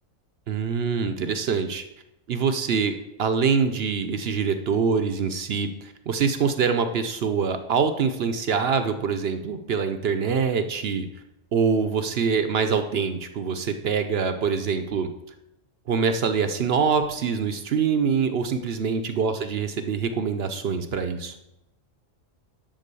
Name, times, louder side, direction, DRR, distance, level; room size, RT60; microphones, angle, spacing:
voice 1, 0.5-1.8 2.3-2.9 3.2-11.1 11.5-15.1 15.9-21.3, right 6 dB, 60° right, 8 dB, 0.8 m, -24 dB
11.0 x 3.9 x 6.8 m, 0.92 s
omnidirectional pair, 1.3 m